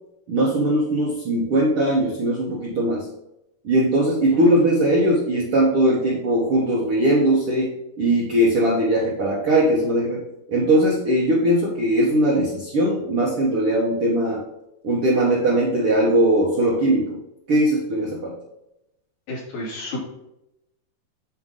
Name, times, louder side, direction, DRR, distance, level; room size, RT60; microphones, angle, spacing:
voice 1, 0.3-3.1 3.6-7.7 8.0-10.2 10.5-14.4 14.8-17.2 17.5-18.3, right 1 dB, 60° right, -4 dB, 1.5 m, -20 dB
voice 2, 19.3-20.0, left 1 dB, 65° left, -5 dB, 4.8 m, -31 dB
9.4 x 4.6 x 3.7 m, 0.86 s
omnidirectional pair, 4.4 m